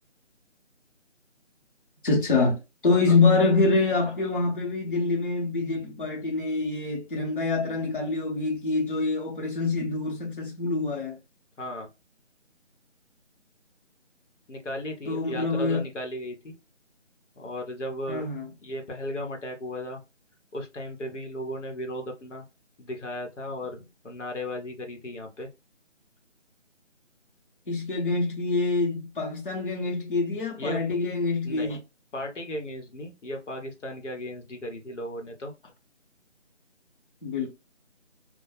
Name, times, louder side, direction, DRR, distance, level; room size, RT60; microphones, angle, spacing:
voice 1, 2.0-2.6 2.8-11.2 15.1-15.8 18.1-18.5 27.7-31.8 37.2-37.5, left 3 dB, 45° left, 0.8 m, -25 dB
voice 2, 11.6-11.9 14.5-16.5 17.4-18.3 18.6-20.0 20.5-22.4 22.8-25.5 30.6-30.8 31.4-31.8 32.1-35.5, left 1 dB, 80° left, 0.9 m, -35 dB
2.1 x 2.0 x 3.0 m
figure-of-eight pair, 180°, 36 cm